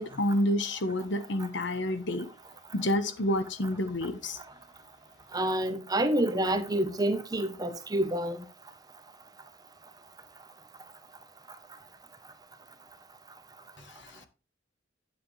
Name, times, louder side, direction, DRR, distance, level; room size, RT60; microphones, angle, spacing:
voice 1, 0.0-2.3 2.7-4.4 13.8-14.3, left 1 dB, 65° left, 1.2 m, -29 dB
voice 2, 5.3-8.4, right 1 dB, 20° right, 0.9 m, -28 dB
9.3 x 7.5 x 3.2 m
head